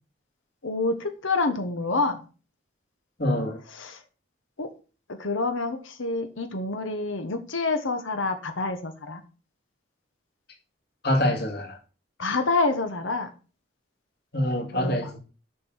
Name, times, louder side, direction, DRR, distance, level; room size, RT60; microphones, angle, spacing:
voice 1, 0.6-2.2 3.7-4.0 4.6-4.7 5.2-9.2 12.2-13.3 14.7-15.0, left 3 dB, 80° left, 1.2 m, -27 dB
voice 2, 3.2-3.6 11.0-11.8 14.3-15.2, left 1 dB, 55° left, 2.3 m, -25 dB
7.5 x 5.7 x 6.3 m
head